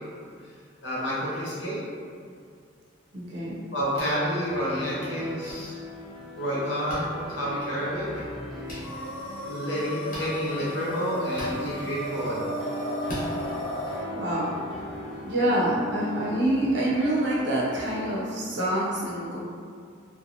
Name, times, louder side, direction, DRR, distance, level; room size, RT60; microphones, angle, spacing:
voice 1, 0.8-1.8 3.7-5.7 6.4-8.1 9.5-12.5, equal, 70° left, -8 dB, 0.9 m, -29 dB
voice 2, 3.1-3.6 14.1-14.5 15.2-19.4, right 1 dB, 65° right, -6 dB, 0.6 m, -26 dB
sound 1, 3.9-4.2 5.5-5.6 6.9-7.0 8.6-8.8 10.1-10.3 11.3-11.6 13.0-13.3, left 1 dB, 45° left, 0.8 m, -37 dB
sound 2, 4.5-18.2, equal, ahead, 0.6 m, -39 dB
sound 3, 8.8-14.0, equal, 90° left, 0.6 m, -35 dB
2.6 x 2.2 x 2.6 m, 2.3 s
head